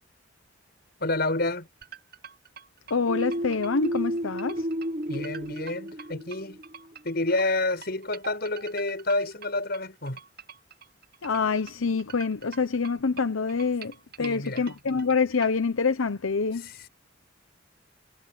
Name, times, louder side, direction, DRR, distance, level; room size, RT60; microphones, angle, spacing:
voice 1, 1.0-1.7 5.1-6.6 7.0-10.2 14.2-14.7 16.6-16.9, left 2 dB, 50° left, 6.4 m, -29 dB
sound 1, 1.8-15.5, right 7 dB, 50° right, 6.6 m, -46 dB
voice 2, 2.9-4.7 11.2-16.7, left 4 dB, 90° left, 0.8 m, -26 dB
sound 2, 3.1-6.7, equal, 30° right, 0.9 m, -32 dB
head